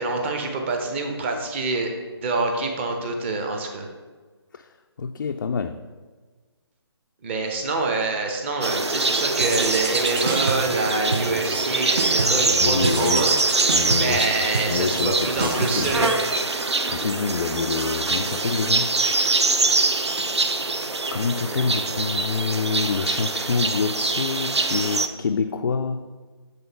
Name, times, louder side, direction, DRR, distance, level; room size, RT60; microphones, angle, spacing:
voice 1, 0.0-1.9 2.2-3.9 7.2-13.3 14.0-16.2 21.4-21.6, right 3 dB, 25° right, 3 dB, 0.8 m, -26 dB
voice 2, 5.0-5.8 12.6-13.3 13.7-14.3 14.7-16.1 16.9-19.5 21.1-26.1, left 5 dB, 50° left, 5 dB, 0.4 m, -27 dB
sound 1, 8.6-25.1, right 3 dB, 80° right, 0.6 m, -24 dB
sound 2, 9.4-10.8 11.1-11.7 12.0-12.5 12.8-16.8, right 2 dB, 55° right, 0.9 m, -29 dB
8.0 x 3.7 x 5.5 m, 1.4 s
figure-of-eight pair, 150°, 14 cm